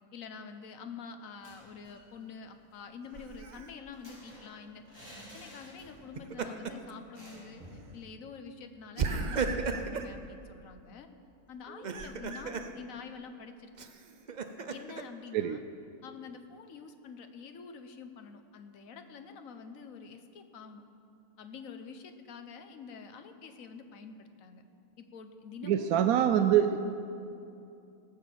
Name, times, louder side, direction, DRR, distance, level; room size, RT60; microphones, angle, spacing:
voice 1, 0.1-4.8 5.2-7.6 7.9-11.1 11.5-13.7 14.7-15.6 16.0-20.8 21.4-24.6 25.0-26.2, left 5 dB, 65° left, 7 dB, 1.2 m, -47 dB
sound 1, 1.3-2.1 2.4-2.5 2.8-6.2 6.5-6.6 7.1-7.9, equal, 15° left, 3.6 m, -52 dB
Laughter, 3.1-3.7 6.0-6.9 7.3-7.5 9.0-10.1 11.7-12.7 13.8-15.0, right 4 dB, 50° right, 0.5 m, -35 dB
voice 2, 25.6-26.8, right 10 dB, 75° right, 8 dB, 1.0 m, -25 dB
17.5 x 6.8 x 7.5 m, 2.6 s
omnidirectional pair, 1.6 m